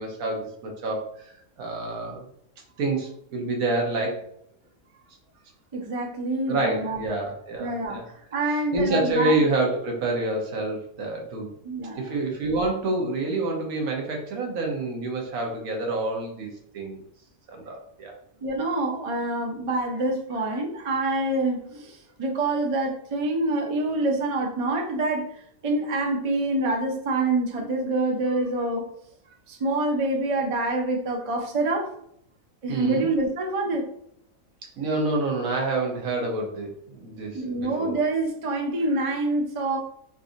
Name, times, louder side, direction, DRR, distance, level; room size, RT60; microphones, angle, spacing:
voice 1, 0.0-2.3 2.8-4.3 6.5-8.1 8.5-11.5 12.0-16.5 16.7-17.0 17.5-18.1 32.7-33.1 34.8-38.0, right 2 dB, 80° right, 1 dB, 1.3 m, -28 dB
voice 2, 5.7-7.0 7.6-8.0 8.3-9.4 11.6-12.2 18.4-25.3 25.6-28.9 29.5-31.9 32.6-33.9 37.3-39.8, right 2 dB, 55° right, 1 dB, 0.3 m, -26 dB
4.0 x 2.5 x 2.5 m, 0.70 s
omnidirectional pair, 1.5 m